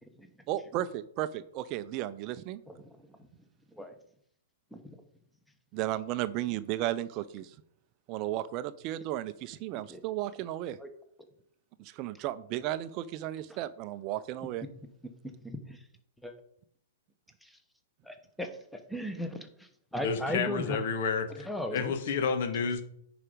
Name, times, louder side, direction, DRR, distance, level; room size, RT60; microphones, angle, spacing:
voice 1, 0.5-2.6 5.7-7.6 8.1-10.8 11.8-14.6, right 14 dB, 40° right, 14 dB, 0.5 m, -34 dB
voice 2, 2.7-3.2 3.7-3.9 4.7-4.8 9.7-10.0 10.8-10.9 11.2-11.3 13.5-13.6 15.4-15.8 16.2-16.4 17.4-17.6 18.0-20.8 21.3-21.9, equal, ahead, 6 dB, 1.2 m, -38 dB
voice 3, 20.0-21.5 21.7-22.8, left 5 dB, 55° left, 9 dB, 1.3 m, -30 dB
9.8 x 4.9 x 5.1 m, 0.70 s
hypercardioid pair, 115°, 0 cm